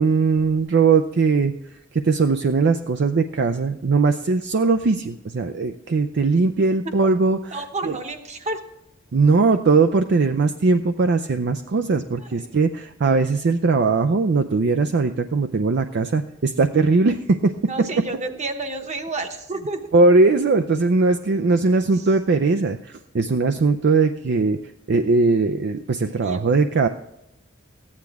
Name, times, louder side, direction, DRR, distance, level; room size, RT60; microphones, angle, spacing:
voice 1, 0.0-1.5 1.9-7.6 7.8-7.9 9.1-17.7 19.9-24.6 24.9-26.9, right 4 dB, 55° right, 8 dB, 0.4 m, -19 dB
voice 2, 7.5-8.6 12.2-12.5 17.7-20.0 21.9-22.1 26.2-26.5, right 2 dB, 35° right, 6 dB, 1.1 m, -30 dB
14.5 x 9.7 x 3.5 m, 0.85 s
head